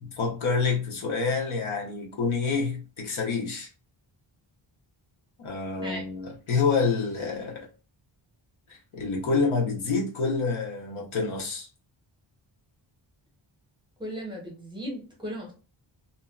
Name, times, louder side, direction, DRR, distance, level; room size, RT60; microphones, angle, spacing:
voice 1, 0.0-3.7 5.4-7.7 8.7-11.7, left 4 dB, 85° left, 0.9 m, -27 dB
voice 2, 14.0-15.5, equal, 10° right, 0.8 m, -36 dB
2.7 x 2.2 x 2.3 m
wide cardioid pair, 170°, 48 cm